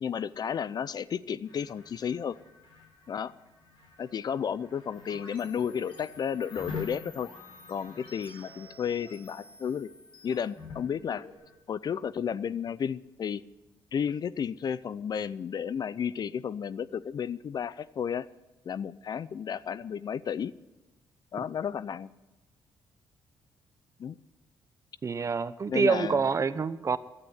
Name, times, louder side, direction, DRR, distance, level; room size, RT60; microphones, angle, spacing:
voice 1, 0.0-2.4 3.1-3.3 4.0-7.3 7.7-9.9 10.2-11.3 11.7-13.4 13.9-18.3 18.6-20.5 21.3-22.1 24.0-24.2 25.7-26.3, left 7 dB, 50° left, 19 dB, 0.5 m, -32 dB
sound 1, 1.4-11.5, left 5 dB, 70° left, 3.3 m, -48 dB
sound 2, 4.9-11.3, left 2 dB, 85° left, 3.3 m, -51 dB
voice 2, 25.0-27.0, right 5 dB, 35° right, 15 dB, 0.7 m, -27 dB
12.0 x 8.5 x 9.6 m, 1.1 s
cardioid pair, 80°, 9 cm